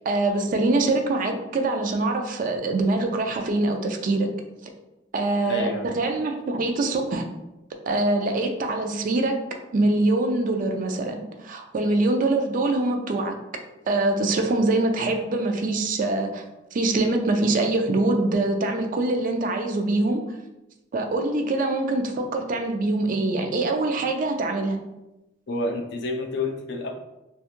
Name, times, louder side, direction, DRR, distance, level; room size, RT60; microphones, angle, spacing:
voice 1, 0.1-4.3 5.1-7.2 7.9-9.4 9.7-13.4 13.9-16.4 16.7-20.2 20.9-24.8, right 2 dB, 45° right, 5 dB, 0.3 m, -24 dB
voice 2, 5.4-5.9 25.5-26.9, left 2 dB, 65° left, 3 dB, 0.4 m, -29 dB
2.9 x 2.3 x 2.4 m, 0.97 s
head